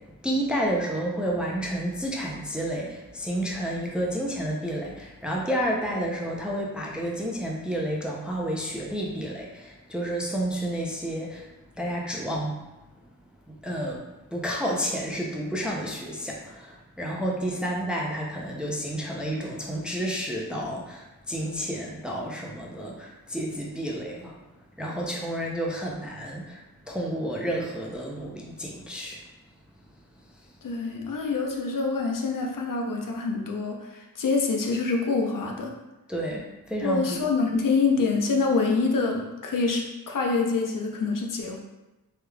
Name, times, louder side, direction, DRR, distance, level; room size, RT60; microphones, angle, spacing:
voice 1, 0.2-12.6 13.5-24.4 24.8-29.2 36.1-37.2, equal, 5° right, -2 dB, 0.4 m, -30 dB
voice 2, 30.6-35.7 36.8-41.6, left 4 dB, 60° left, 1 dB, 0.6 m, -26 dB
3.5 x 3.2 x 2.2 m, 1.0 s
wide cardioid pair, 100°, 37 cm